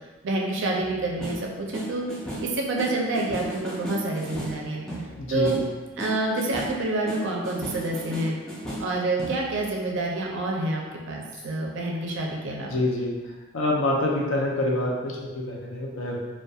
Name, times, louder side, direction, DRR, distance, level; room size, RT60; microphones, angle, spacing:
voice 1, 0.2-2.1 2.4-4.8 5.3-5.6 6.0-8.4 8.8-10.8 11.1-12.8, right 2 dB, 60° right, -1 dB, 0.4 m, -28 dB
sound 1, 0.8-9.7, equal, 5° left, 0.3 m, -36 dB
voice 2, 5.2-5.5 12.6-13.1 13.5-16.2, left 1 dB, 65° left, -2 dB, 0.5 m, -26 dB
2.2 x 2.1 x 2.6 m, 1.2 s
head